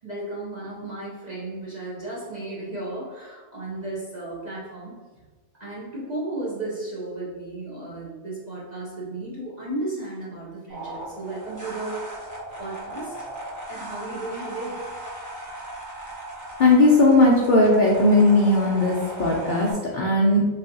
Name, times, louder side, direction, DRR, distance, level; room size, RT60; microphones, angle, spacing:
voice 1, 0.0-5.2 5.5-12.3 12.6-13.3 13.7-15.0, right 2 dB, 50° right, -7 dB, 0.5 m, -34 dB
sound 1, 10.7-19.7, right 1 dB, 15° right, 0.7 m, -37 dB
voice 2, 16.6-20.5, left 2 dB, 80° left, -3 dB, 0.4 m, -18 dB
4.0 x 2.7 x 2.6 m, 1.3 s
omnidirectional pair, 1.5 m